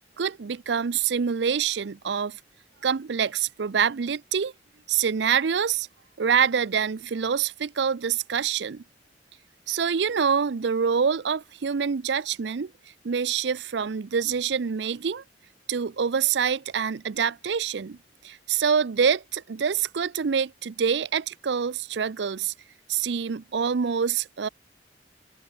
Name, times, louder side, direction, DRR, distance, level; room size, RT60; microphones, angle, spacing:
voice 1, 0.2-2.4 2.8-4.5 4.9-5.9 6.2-8.8 9.7-12.7 13.0-15.2 15.7-18.0 18.2-22.5 22.9-24.5, right 7 dB, 70° right, 0.5 m, -26 dB
head